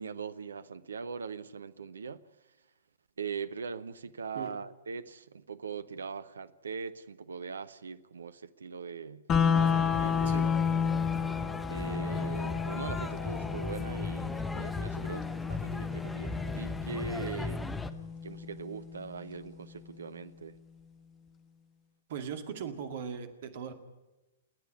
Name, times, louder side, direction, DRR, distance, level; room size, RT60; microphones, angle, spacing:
voice 1, 0.0-2.2 3.2-9.2 9.7-10.5 10.8-11.0 11.7-17.9 18.2-20.6, right 5 dB, 70° right, 0.8 m, -41 dB
sound 1, 9.3-19.3, left 6 dB, 25° left, 1.6 m, -32 dB
sound 2, 9.5-17.9, left 3 dB, 10° left, 1.2 m, -38 dB
voice 2, 22.1-23.7, right 7 dB, 50° right, 2.2 m, -39 dB
29.5 x 10.5 x 9.9 m
figure-of-eight pair, 110°, 0 cm